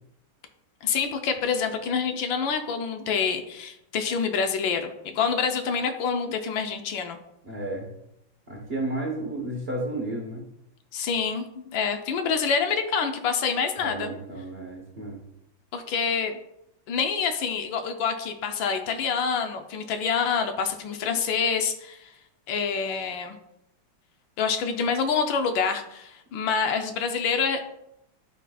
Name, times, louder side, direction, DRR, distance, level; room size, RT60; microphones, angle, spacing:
voice 1, 0.8-7.2 10.9-14.1 15.7-16.3 16.9-22.1 22.5-23.4 24.4-27.6, left 6 dB, 75° left, 6 dB, 1.3 m, -27 dB
voice 2, 7.4-7.9 8.5-10.4 13.8-15.2, right 1 dB, 40° right, -1 dB, 0.9 m, -32 dB
12.0 x 4.1 x 2.3 m, 0.82 s
omnidirectional pair, 2.2 m